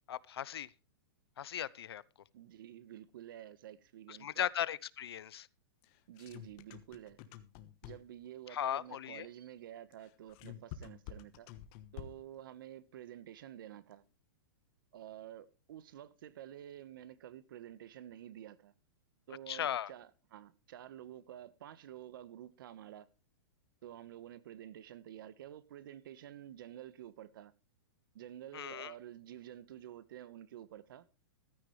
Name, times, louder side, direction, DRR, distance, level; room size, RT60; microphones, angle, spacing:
voice 1, 0.1-0.7 1.4-2.0 4.1-5.5 8.5-9.3 19.5-19.9 28.5-28.9, left 10 dB, 80° left, 0.8 m, -37 dB
voice 2, 2.3-4.5 6.1-7.2 7.8-11.5 11.9-14.0 14.9-18.7 19.3-23.1 23.8-27.5 28.1-31.1, right 11 dB, 60° right, 1.3 m, -50 dB
sound 1, 5.8-8.3 9.9-12.4, left 11 dB, 30° left, 1.2 m, -49 dB
15.0 x 13.5 x 3.3 m
hypercardioid pair, 165°, 13 cm